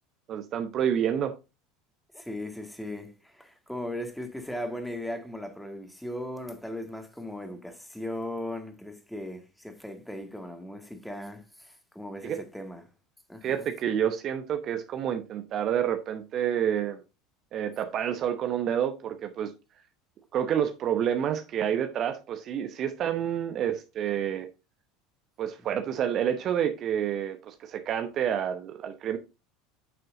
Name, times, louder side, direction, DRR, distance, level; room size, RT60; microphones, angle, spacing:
voice 1, 0.3-1.3 12.2-12.4 13.4-17.0 17.5-19.5 20.3-24.5 25.4-29.2, right 9 dB, 40° right, 0.9 m, -28 dB
voice 2, 2.1-12.9 13.3-13.7 25.8-25.9, left 1 dB, ahead, 1.8 m, -38 dB
9.5 x 6.6 x 2.6 m
figure-of-eight pair, 70°, 0 cm